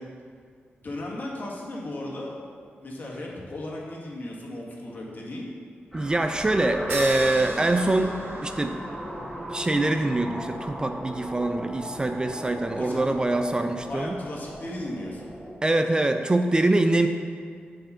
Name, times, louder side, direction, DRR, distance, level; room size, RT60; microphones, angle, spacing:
voice 1, 0.8-2.3 2.8-5.5 12.8-13.4 13.9-15.3, left 1 dB, 50° left, -3 dB, 1.8 m, -36 dB
sound 1, 5.9-15.5, equal, 5° right, 1.2 m, -38 dB
voice 2, 5.9-8.8 9.5-14.2 15.6-17.1, right 2 dB, 20° right, 6 dB, 0.4 m, -24 dB
sound 2, 6.9-9.0, right 4 dB, 80° right, 0.7 m, -37 dB
7.3 x 5.2 x 5.6 m, 2.2 s
cardioid pair, 85°, 4 cm